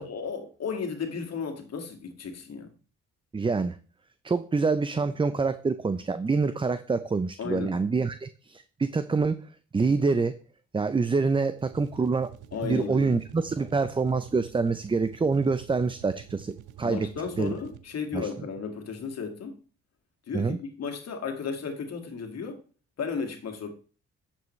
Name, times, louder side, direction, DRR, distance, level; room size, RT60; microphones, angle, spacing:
voice 1, 0.0-2.7 7.4-7.8 12.5-13.1 16.8-19.6 20.3-22.6 23.0-23.7, left 5 dB, 55° left, 2.0 m, -34 dB
voice 2, 3.3-3.8 4.2-9.4 9.7-10.3 10.7-12.3 12.6-17.1 17.4-17.5 18.1-18.3 20.3-20.6, right 4 dB, 15° right, 0.5 m, -26 dB
sound 1, 11.5-18.1, right 11 dB, 80° right, 0.9 m, -48 dB
11.0 x 7.3 x 3.2 m
cardioid pair, 90°, 30 cm